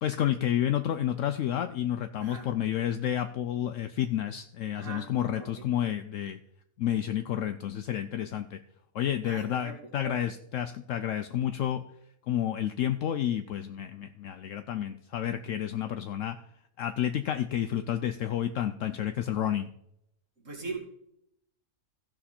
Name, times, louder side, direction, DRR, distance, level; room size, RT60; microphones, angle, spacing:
voice 1, 0.0-6.4 6.8-8.6 8.9-11.8 12.3-16.4 16.8-19.7, left 10 dB, 70° left, 8 dB, 0.9 m, -30 dB
voice 2, 2.2-2.5 4.8-5.5 9.2-10.2 20.4-20.8, right 3 dB, 60° right, 1 dB, 2.6 m, -40 dB
15.5 x 6.0 x 4.3 m, 0.77 s
omnidirectional pair, 1.5 m